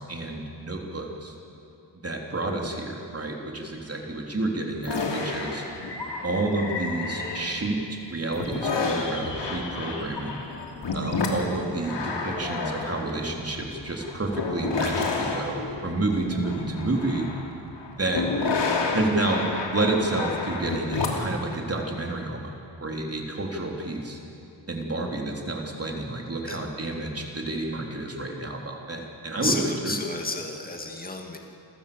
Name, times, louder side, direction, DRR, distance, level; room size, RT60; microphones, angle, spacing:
voice 1, 0.0-1.4 1.9-5.6 6.2-10.4 10.9-17.3 18.0-18.3 18.9-19.5 19.7-22.5 22.8-24.2 24.7-30.0, right 2 dB, 30° right, 1 dB, 3.5 m, -29 dB
sound 1, 4.8-7.8 8.2-21.4, left 4 dB, 65° left, 3.1 m, -30 dB
voice 2, 29.4-31.4, left 3 dB, 20° left, 2 dB, 2.3 m, -31 dB
28.5 x 15.5 x 7.1 m, 2.9 s
wide cardioid pair, 95°, 45 cm